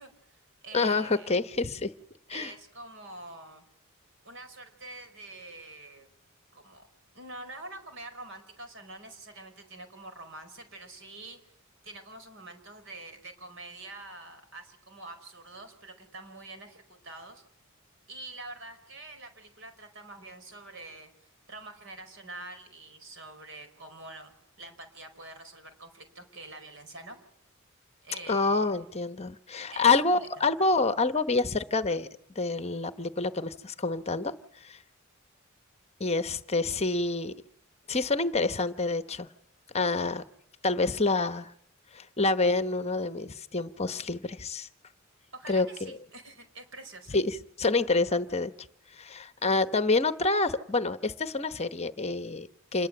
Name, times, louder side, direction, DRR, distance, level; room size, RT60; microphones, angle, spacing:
voice 1, 0.0-1.3 2.3-3.6 4.2-6.1 6.5-6.9 7.1-11.4 11.8-17.4 18.1-24.3 24.6-27.2 28.0-28.7 29.7-30.5 45.3-47.2, right 2 dB, 65° right, 7 dB, 5.0 m, -46 dB
voice 2, 0.7-1.9 2.3-2.5 28.3-32.1 32.4-34.8 36.0-37.3 37.9-39.3 39.7-40.2 40.6-41.5 41.9-44.7 45.5-45.9 47.1-48.5 48.9-52.9, left 3 dB, 30° left, 11 dB, 0.9 m, -27 dB
27.5 x 21.0 x 7.8 m, 0.70 s
head